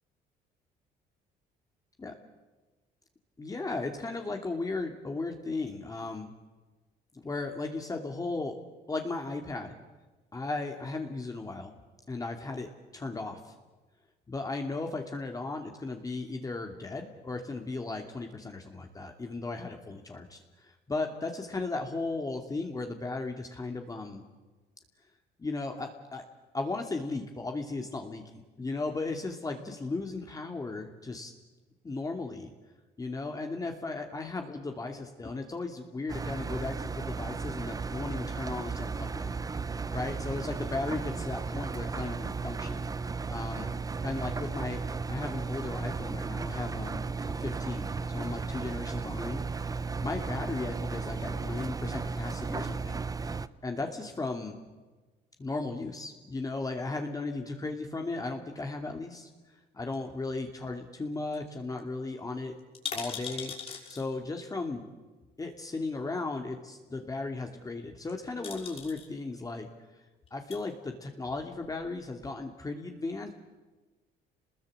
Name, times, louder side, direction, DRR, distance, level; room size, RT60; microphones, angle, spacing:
voice 1, 3.4-6.3 7.2-8.5 8.9-9.7 10.3-11.7 12.1-13.5 14.3-24.2 25.4-26.2 26.5-31.3 31.8-32.5 33.0-39.3 39.9-42.9 43.3-43.7 44.0-44.8 45.1-47.1 47.4-53.0 53.6-54.6 55.4-59.3 59.7-62.5 62.9-63.5 63.9-64.9 65.4-69.7 70.3-73.3, left 3 dB, 20° left, 3 dB, 2.6 m, -36 dB
Engine, 36.1-53.5, right 4 dB, 20° right, 0.9 m, -35 dB
sound 1, 59.9-60.7 61.0-61.1 61.3-61.5 61.8-61.9 62.6-64.0 65.2-65.3 67.9-68.1 68.4-69.1 70.2-70.6 71.3-72.0 72.2-72.3, left 6 dB, 35° left, 6.2 m, -40 dB
28.5 x 21.0 x 8.7 m, 1.2 s
cardioid pair, 110°, 17 cm